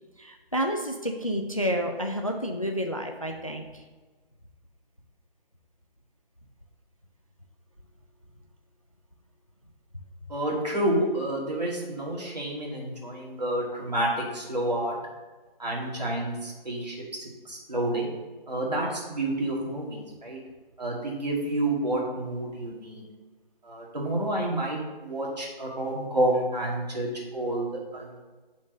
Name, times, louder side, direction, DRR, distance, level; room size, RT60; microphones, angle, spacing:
voice 1, 0.2-3.6, equal, 35° left, 3 dB, 0.5 m, -29 dB
voice 2, 10.3-15.0 15.6-17.0 17.5-18.1 18.5-20.4 20.8-23.0 23.6-27.7 27.9-28.2, right 1 dB, 45° right, -4 dB, 2.2 m, -29 dB
5.8 x 4.6 x 6.4 m, 1.3 s
figure-of-eight pair, 180°, 30 cm